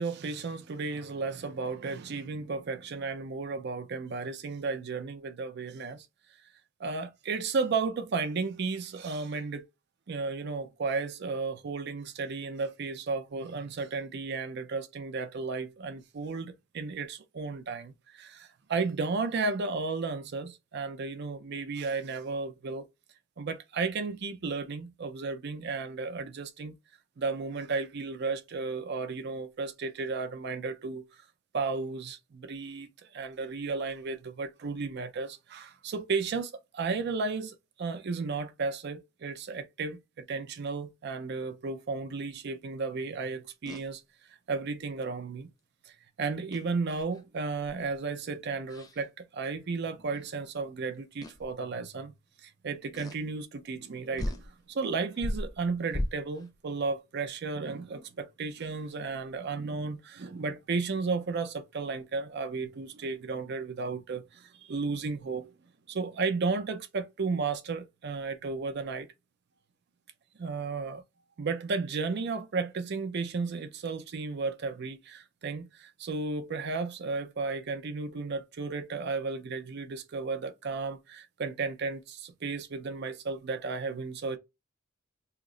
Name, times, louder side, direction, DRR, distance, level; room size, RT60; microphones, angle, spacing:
voice 1, 0.0-6.1 6.8-9.7 10.1-22.9 23.4-26.7 27.2-31.0 31.5-44.0 44.5-45.5 45.9-52.1 52.4-54.4 54.7-65.5 65.9-69.1 70.4-71.0 71.4-84.4, right 4 dB, 55° right, 0.4 m, -34 dB
sound 1, 43.7-43.9 46.5-47.2 47.6-47.9 48.7-49.0 50.2-50.3 51.2-51.5 52.9-53.2 53.8-53.9 54.2-54.5 55.1-56.5, left 1 dB, 20° left, 0.3 m, -36 dB
2.8 x 2.0 x 3.6 m
head